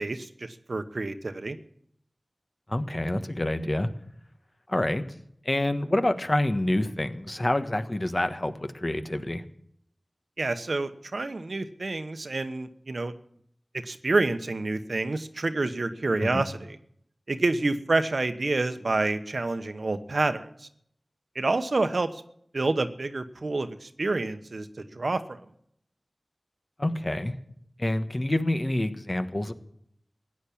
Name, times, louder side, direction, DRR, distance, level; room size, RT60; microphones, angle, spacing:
voice 1, 0.0-1.6 10.4-13.1 13.8-16.8 17.3-20.7 21.3-22.2 22.5-25.4, right 2 dB, 80° right, 10 dB, 1.1 m, -28 dB
voice 2, 2.7-3.9 4.7-5.1 5.4-9.4 16.2-16.4 26.8-27.3 27.8-29.5, left 1 dB, 40° left, 9 dB, 1.4 m, -27 dB
15.5 x 9.8 x 8.6 m, 0.69 s
wide cardioid pair, 50°, 0 cm